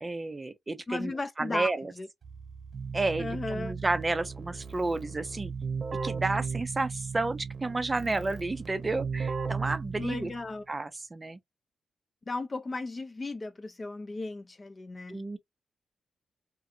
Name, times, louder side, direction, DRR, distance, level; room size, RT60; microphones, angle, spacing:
voice 1, 0.0-1.1 1.4-1.9 2.9-5.5 6.0-10.3 10.7-11.4 15.1-15.4, right 2 dB, 30° right, 0.4 m, -31 dB
voice 2, 0.9-1.7 2.0-2.1 3.2-3.7 10.0-10.6 12.3-15.2, left 3 dB, 35° left, 0.4 m, -35 dB
Keyboard (musical), 2.2-10.5, right 5 dB, 55° right, 0.7 m, -36 dB
2.6 x 2.5 x 2.5 m
cardioid pair, 65°, 0 cm